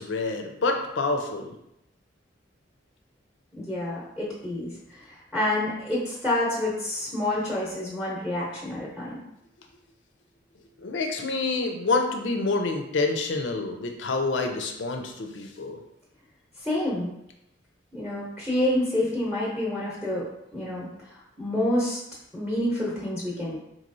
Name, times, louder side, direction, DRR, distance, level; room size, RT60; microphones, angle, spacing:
voice 1, 0.0-1.5 10.8-15.8, left 3 dB, 90° left, 4 dB, 0.5 m, -27 dB
voice 2, 3.6-9.2 16.6-17.1 17.9-20.9 21.4-22.0 22.3-23.6, left 1 dB, 5° right, -5 dB, 0.8 m, -28 dB
3.9 x 3.0 x 2.6 m, 0.82 s
head